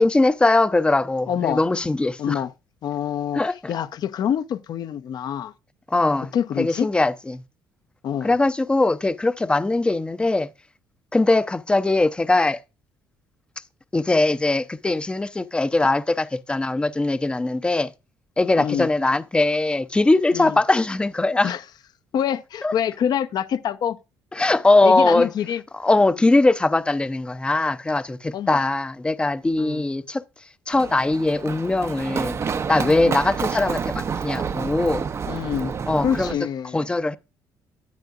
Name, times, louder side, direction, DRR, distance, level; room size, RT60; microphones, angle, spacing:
voice 1, 0.0-2.4 3.3-3.7 5.9-7.4 8.2-10.5 11.1-12.6 13.9-17.9 18.4-21.5 22.6-22.7 24.3-25.3 25.8-30.2 30.7-32.4 32.7-35.0 35.9-36.4 36.7-37.2, left 2 dB, 15° left, 0.6 m, -21 dB
voice 2, 1.3-1.6 2.2-2.5 2.8-3.4 3.7-5.5 6.3-6.9 8.0-8.3 18.6-18.9 20.3-20.6 21.4-21.6 22.1-24.0 24.8-25.6 28.3-28.6 29.6-29.8 32.9-33.2 35.3-35.7 36.0-36.9, left 9 dB, 60° left, 0.8 m, -26 dB
Run, 30.7-36.3, right 6 dB, 35° right, 0.6 m, -29 dB
10.5 x 9.0 x 2.4 m
cardioid pair, 100°, 8 cm